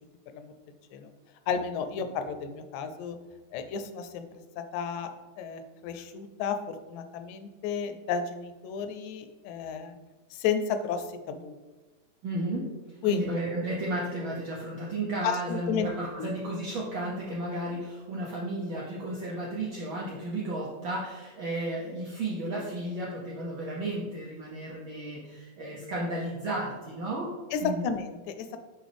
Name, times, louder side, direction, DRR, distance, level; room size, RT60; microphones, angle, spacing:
voice 1, 1.5-3.2 3.5-4.2 4.6-5.1 5.4-10.0 10.3-11.5 13.0-13.3 15.2-15.9 16.2-16.3 27.5-28.6, left 6 dB, 85° left, 9 dB, 2.0 m, -32 dB
voice 2, 12.2-12.7 13.1-27.3 27.6-27.8, right 1 dB, 75° right, -4 dB, 1.1 m, -33 dB
6.2 x 4.8 x 3.4 m, 1.3 s
omnidirectional pair, 3.3 m